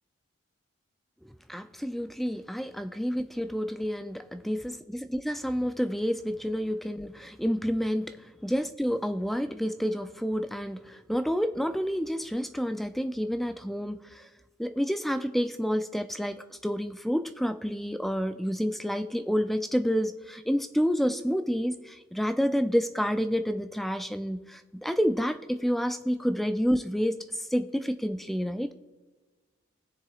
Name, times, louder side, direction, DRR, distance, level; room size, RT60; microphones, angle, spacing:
voice 1, 1.3-8.2 8.4-14.3 14.6-28.7, equal, ahead, 8 dB, 0.3 m, -29 dB
20.5 x 6.8 x 2.4 m, 1.3 s
head